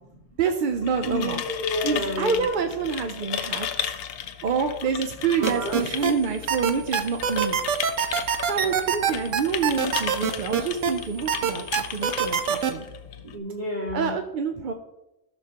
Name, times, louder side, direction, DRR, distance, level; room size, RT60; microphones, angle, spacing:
voice 1, 0.4-1.4 1.8-3.7 4.4-7.6 8.5-12.9 13.9-14.7, right 5 dB, 55° right, 6 dB, 0.6 m, -27 dB
sound 1, 0.7-13.4, left 9 dB, 60° left, 0.7 m, -35 dB
voice 2, 1.0-2.4 5.4-5.8 13.3-14.2, left 1 dB, 40° right, -3 dB, 2.9 m, -30 dB
sound 2, 5.4-6.1 6.5-10.9 11.3-12.7, right 8 dB, 90° right, 1.1 m, -23 dB
13.5 x 6.1 x 2.8 m, 0.93 s
omnidirectional pair, 1.3 m